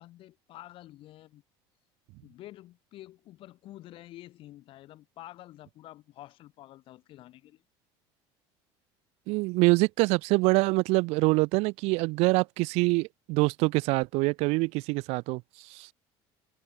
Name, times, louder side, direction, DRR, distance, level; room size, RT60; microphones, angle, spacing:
voice 1, 0.0-1.4 2.2-7.6, left 15 dB, 50° left, 5.1 m, -49 dB
voice 2, 9.3-15.4, right 25 dB, 70° right, 0.9 m, -25 dB
cardioid pair, 140°, 11 cm